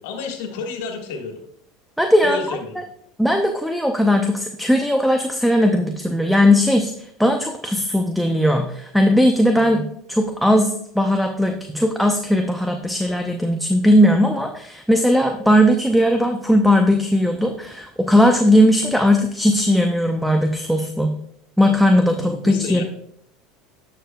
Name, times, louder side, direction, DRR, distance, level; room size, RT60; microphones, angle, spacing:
voice 1, 0.0-1.4 2.2-2.8 22.2-22.8, left 4 dB, 75° left, 3 dB, 1.6 m, -30 dB
voice 2, 2.0-2.6 3.2-21.1 21.6-22.8, equal, ahead, 4 dB, 0.7 m, -18 dB
9.9 x 6.8 x 2.3 m, 0.70 s
hypercardioid pair, 90°, 0 cm